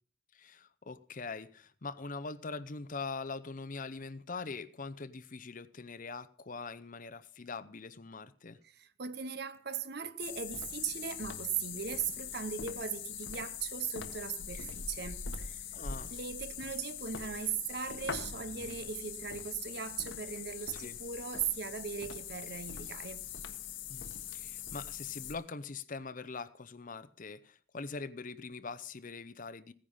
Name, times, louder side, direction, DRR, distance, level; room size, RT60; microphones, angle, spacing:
voice 1, 0.3-8.6 15.7-16.1 20.8-21.0 23.9-29.7, left 4 dB, 45° left, 0.7 m, -43 dB
voice 2, 8.6-15.6 16.1-23.2, right 7 dB, 55° right, 0.9 m, -38 dB
sound 1, 10.2-25.3, left 7 dB, 80° left, 1.5 m, -42 dB
16.0 x 10.0 x 5.6 m
head